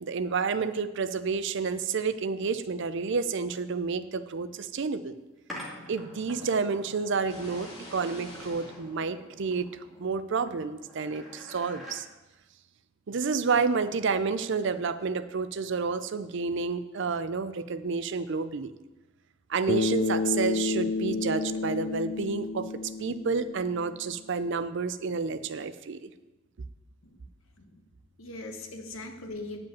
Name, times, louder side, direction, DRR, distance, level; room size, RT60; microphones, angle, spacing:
voice 1, 0.0-5.1 5.9-9.7 10.0-12.1 13.1-18.7 19.5-22.7 23.0-26.1, right 5 dB, 60° right, 13 dB, 0.5 m, -30 dB
sound 1, 5.5-12.0, equal, ahead, 2.0 m, -47 dB
sound 2, 7.2-10.0, equal, 20° left, 2.1 m, -46 dB
Bass guitar, 19.7-24.1, left 3 dB, 55° left, 0.5 m, -30 dB
voice 2, 28.2-29.6, left 2 dB, 70° left, 4 dB, 1.3 m, -40 dB
9.0 x 5.1 x 7.3 m, 1.1 s
head